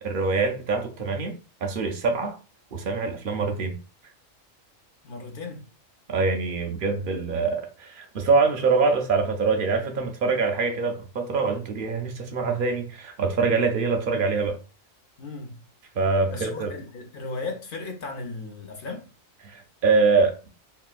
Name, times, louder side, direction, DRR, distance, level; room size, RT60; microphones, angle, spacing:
voice 1, 0.0-1.3 1.6-2.4 2.7-3.8 6.1-14.6 15.9-16.7 19.4-20.5, right 4 dB, 60° right, 0.6 m, -24 dB
voice 2, 5.0-5.6 15.2-15.6 16.3-19.1, left 3 dB, 55° left, 0.6 m, -36 dB
3.7 x 2.3 x 2.4 m
omnidirectional pair, 1.4 m